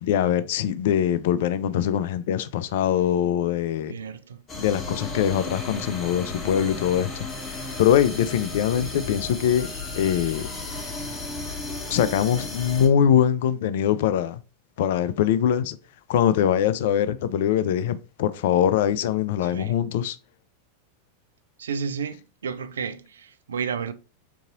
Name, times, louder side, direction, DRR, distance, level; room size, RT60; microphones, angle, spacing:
voice 1, 0.0-3.9 4.6-7.3 7.8-10.5 11.9-14.4 14.8-15.8 16.1-20.2, left 9 dB, 55° left, 0.3 m, -23 dB
voice 2, 3.9-4.4 19.4-19.8 21.6-23.9, right 6 dB, 65° right, 0.3 m, -32 dB
sound 1, 4.5-12.9, left 3 dB, 25° left, 0.9 m, -34 dB
3.8 x 2.7 x 2.5 m
figure-of-eight pair, 90°, 0 cm